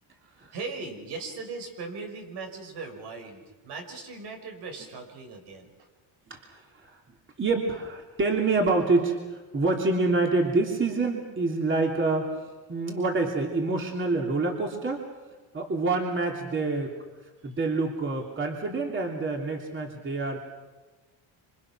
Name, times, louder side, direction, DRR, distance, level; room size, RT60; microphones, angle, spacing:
voice 1, 0.5-5.9 17.4-17.5, right 4 dB, 70° right, 4 dB, 5.9 m, -39 dB
voice 2, 6.3-7.0 7.4-12.4 12.7-15.1 15.5-16.9 17.4-20.4, right 3 dB, 25° right, 1 dB, 3.2 m, -27 dB
27.0 x 26.0 x 6.2 m, 1.2 s
cardioid pair, 130°, 43 cm